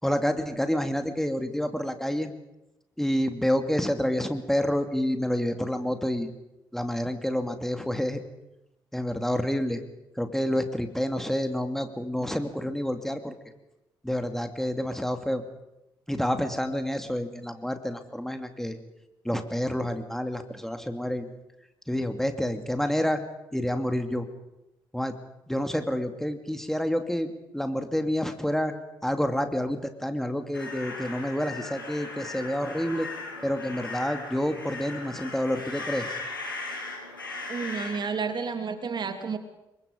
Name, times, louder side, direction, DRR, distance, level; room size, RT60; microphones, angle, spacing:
voice 1, 0.0-2.3 3.0-6.3 6.7-8.2 8.9-9.8 10.2-13.3 14.0-15.4 16.1-18.8 19.2-21.3 21.9-23.2 23.5-24.3 24.9-25.1 25.5-28.7 29.0-33.1 33.4-36.1, equal, 5° left, 6 dB, 2.6 m, -28 dB
sound 1, 30.5-38.0, left 3 dB, 85° left, 3.3 m, -38 dB
voice 2, 37.5-39.4, right 5 dB, 40° right, 8 dB, 2.7 m, -31 dB
28.5 x 24.0 x 5.3 m, 0.91 s
figure-of-eight pair, 40°, 11 cm